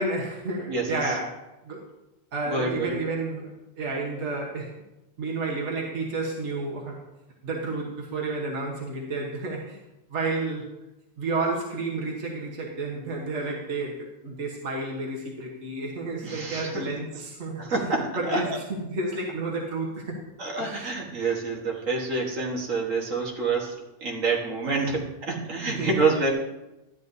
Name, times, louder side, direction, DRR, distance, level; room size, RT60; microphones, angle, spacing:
voice 1, 0.0-1.8 2.3-4.7 5.2-7.0 7.4-9.8 10.1-10.7 11.2-17.6 18.1-20.2 20.6-20.9 24.6-25.0 25.7-26.1, right 3 dB, 65° right, 0 dB, 1.5 m, -31 dB
voice 2, 0.7-1.1 2.5-3.0 16.2-16.9 17.6-18.6 20.4-23.7 24.0-26.3, right 3 dB, 80° right, -1 dB, 1.9 m, -27 dB
12.5 x 9.1 x 2.7 m, 0.97 s
omnidirectional pair, 1.3 m